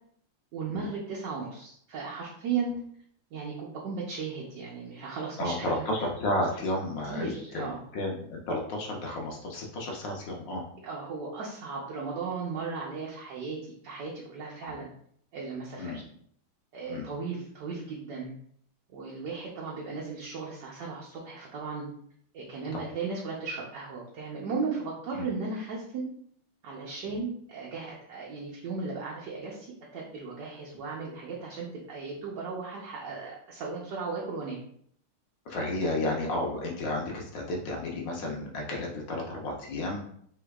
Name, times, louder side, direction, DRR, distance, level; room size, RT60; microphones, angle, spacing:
voice 1, 0.5-2.7 3.3-5.9 7.1-7.8 10.8-14.9 15.3-16.0 16.7-18.3 18.9-21.9 22.3-26.1 26.6-29.7 29.9-34.6, right 4 dB, 65° right, -3 dB, 1.3 m, -36 dB
voice 2, 5.4-7.7 7.9-10.6 14.6-14.7 15.8-16.0 16.9-17.1 22.7-22.8 25.1-25.3 27.1-27.2 35.5-40.0, left 1 dB, 65° left, -1 dB, 1.4 m, -32 dB
5.5 x 3.4 x 2.3 m, 0.64 s
omnidirectional pair, 2.3 m